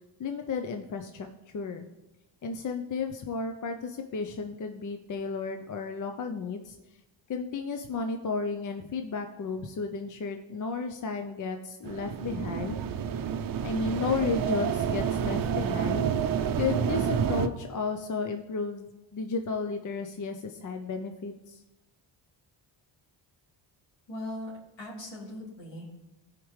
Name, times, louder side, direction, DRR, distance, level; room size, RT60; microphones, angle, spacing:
voice 1, 0.2-1.3 1.5-1.9 2.4-6.8 7.3-12.8 13.6-16.3 16.6-21.6, left 4 dB, 40° left, 6 dB, 0.6 m, -33 dB
sound 1, 11.8-17.5, right 8 dB, 50° right, 0.6 m, -29 dB
voice 2, 24.1-24.5 24.8-26.0, left 1 dB, 70° left, -6 dB, 3.3 m, -39 dB
15.0 x 5.1 x 3.2 m, 0.98 s
cardioid pair, 110°, 46 cm